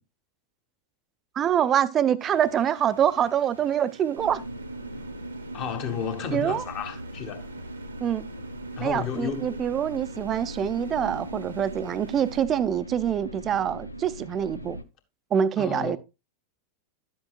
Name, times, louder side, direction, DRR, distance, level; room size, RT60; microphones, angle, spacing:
voice 1, 1.4-4.4 6.3-6.6 8.0-8.3 8.8-14.8 15.3-16.0, right 9 dB, 25° right, 0.5 m, -25 dB
sound 1, 2.2-12.4, right 4 dB, 75° right, 0.9 m, -47 dB
sound 2, 4.2-14.8, right 1 dB, 85° left, 0.6 m, -39 dB
voice 2, 5.5-7.5 8.8-9.6 15.6-16.0, left 7 dB, 40° left, 1.5 m, -32 dB
11.5 x 7.7 x 2.4 m
figure-of-eight pair, 90°, 0 cm